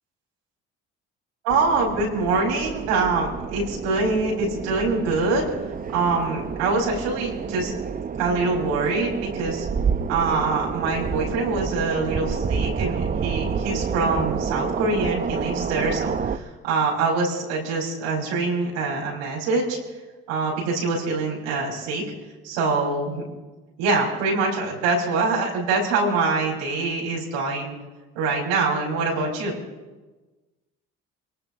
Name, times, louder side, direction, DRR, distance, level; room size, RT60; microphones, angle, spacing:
voice 1, 1.4-5.4 5.9-7.7 8.2-9.7 10.1-19.8 20.3-22.0 22.4-23.2 23.8-27.7 28.2-29.6, right 3 dB, 90° right, -3 dB, 5.4 m, -24 dB
sound 1, 1.5-16.4, right 6 dB, 30° right, 0.8 m, -29 dB
24.5 x 19.0 x 3.0 m, 1.2 s
supercardioid pair, 75°, 29 cm